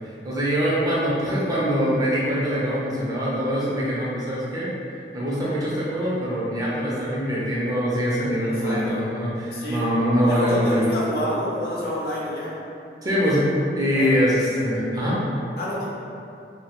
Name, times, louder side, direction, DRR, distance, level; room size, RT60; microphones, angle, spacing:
voice 1, 0.2-4.7 5.1-11.0 13.0-15.2, equal, 20° right, -7 dB, 0.4 m, -23 dB
voice 2, 8.6-9.0 9.5-9.9 10.2-12.5 13.9-14.2 15.6-15.8, equal, 60° left, -6 dB, 0.5 m, -28 dB
2.2 x 2.1 x 2.8 m, 2.6 s
head